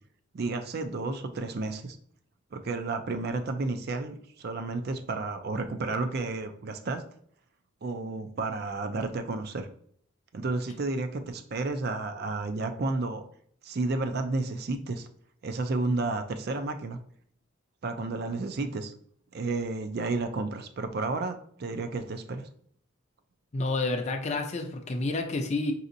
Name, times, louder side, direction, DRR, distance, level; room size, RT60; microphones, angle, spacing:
voice 1, 0.3-2.0 2.5-7.0 7.8-9.7 10.3-13.2 13.6-15.1 15.4-17.0 17.8-18.9 19.3-22.5, right 3 dB, 50° right, 7 dB, 0.4 m, -31 dB
voice 2, 23.5-25.7, left 2 dB, 35° left, 3 dB, 0.5 m, -29 dB
5.1 x 2.8 x 2.6 m, 0.64 s
head